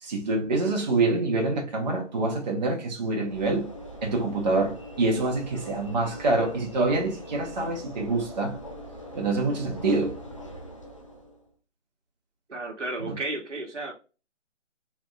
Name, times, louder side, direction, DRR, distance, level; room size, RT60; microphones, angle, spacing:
voice 1, 0.0-3.7 4.0-8.6 9.1-10.2 13.0-13.1, right 2 dB, 35° right, 0.9 m, -26 dB
Train / Engine / Alarm, 3.2-11.5, equal, 30° left, 0.4 m, -42 dB
voice 2, 12.5-13.9, right 2 dB, 75° right, 1.1 m, -33 dB
3.3 x 3.1 x 2.2 m
figure-of-eight pair, 145°, 37 cm